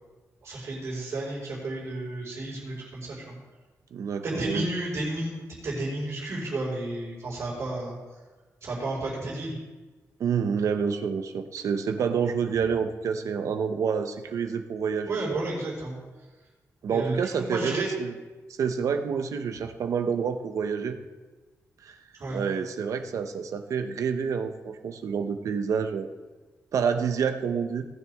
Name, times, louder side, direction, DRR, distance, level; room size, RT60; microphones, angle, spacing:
voice 1, 0.4-3.3 4.2-7.9 8.6-9.6 15.1-15.9 16.9-17.9 22.1-22.4, right 2 dB, 50° right, -10 dB, 5.0 m, -32 dB
voice 2, 3.9-4.7 10.2-15.1 16.8-18.1 18.6-21.0 21.8-21.9 22.3-26.1 26.7-27.9, right 6 dB, 70° right, 7 dB, 0.9 m, -28 dB
18.5 x 9.4 x 3.6 m, 1.3 s
wide cardioid pair, 165°, 6 cm